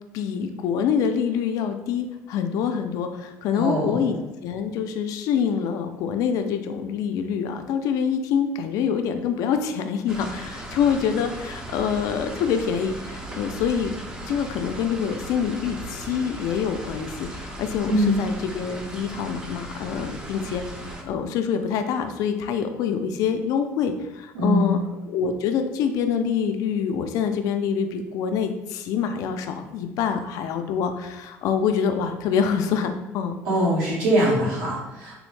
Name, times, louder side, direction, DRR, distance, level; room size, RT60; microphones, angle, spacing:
voice 1, 0.1-13.9 14.3-20.6 21.0-24.8 25.0-33.3, left 7 dB, 70° left, 7 dB, 0.3 m, -26 dB
voice 2, 3.5-4.0 17.9-18.2 24.3-24.8 33.4-35.2, equal, 85° right, -6 dB, 1.4 m, -22 dB
sound 1, 10.1-21.0, right 1 dB, 10° right, 0.4 m, -37 dB
3.5 x 2.1 x 3.1 m, 1.0 s
cardioid pair, 135°, 6 cm